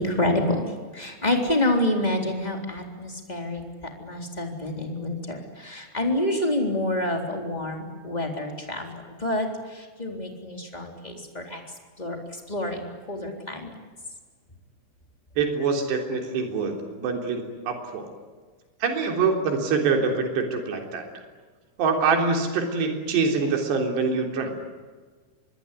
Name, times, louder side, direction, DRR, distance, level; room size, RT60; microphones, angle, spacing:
voice 1, 0.0-3.6 4.0-8.9 9.2-11.6 12.0-12.8 13.1-13.7, left 1 dB, 10° left, 2 dB, 3.1 m, -27 dB
voice 2, 15.4-18.1 18.8-21.1 21.8-24.6, right 4 dB, 60° right, 3 dB, 5.6 m, -25 dB
25.5 x 21.5 x 9.9 m, 1.4 s
omnidirectional pair, 5.6 m